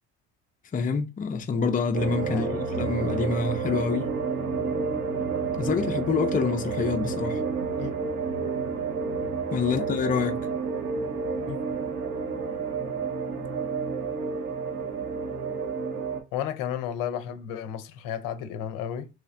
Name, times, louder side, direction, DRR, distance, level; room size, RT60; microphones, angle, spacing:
voice 1, 0.7-4.1 5.6-7.4 9.5-10.5, left 5 dB, 25° left, 0.6 m, -27 dB
sound 1, 1.9-16.2, right 5 dB, 45° right, 1.0 m, -30 dB
voice 2, 16.3-19.1, left 9 dB, 70° left, 0.6 m, -33 dB
3.2 x 3.1 x 2.5 m
supercardioid pair, 75°, 34 cm